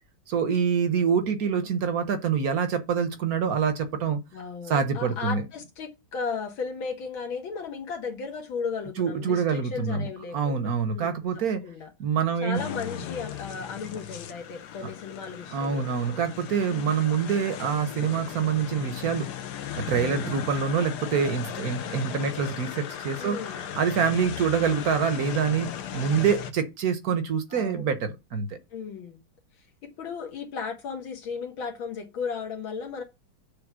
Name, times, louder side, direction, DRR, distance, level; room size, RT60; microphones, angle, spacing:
voice 1, 0.3-4.2 4.7-5.4 9.0-11.6 12.0-12.6 15.5-19.3 19.7-23.4 23.8-28.6, right 6 dB, 60° right, 1.1 m, -26 dB
voice 2, 4.3-11.9 12.4-16.0 16.7-17.0 20.0-20.4 23.2-23.6 25.8-26.3 27.5-27.9 28.7-29.2 29.8-33.0, left 5 dB, 80° left, 2.1 m, -35 dB
sound 1, 12.5-26.5, left 9 dB, 65° left, 1.1 m, -37 dB
6.9 x 3.4 x 6.1 m
omnidirectional pair, 2.2 m